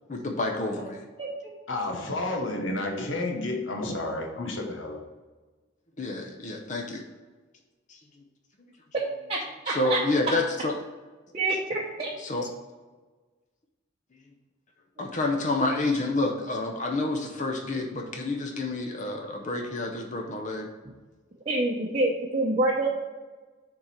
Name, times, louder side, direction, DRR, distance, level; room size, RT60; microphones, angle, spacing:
voice 1, 0.1-1.0 6.0-7.0 7.9-8.0 8.6-8.7 9.7-10.7 12.2-12.5 15.0-20.7, left 2 dB, 40° left, 2 dB, 0.7 m, -29 dB
voice 2, 1.7-5.0, left 2 dB, 90° left, 2 dB, 1.2 m, -31 dB
voice 3, 9.3-10.0 11.3-12.1 21.5-22.9, right 2 dB, 30° right, -4 dB, 0.8 m, -27 dB
6.9 x 3.9 x 4.4 m, 1.3 s
head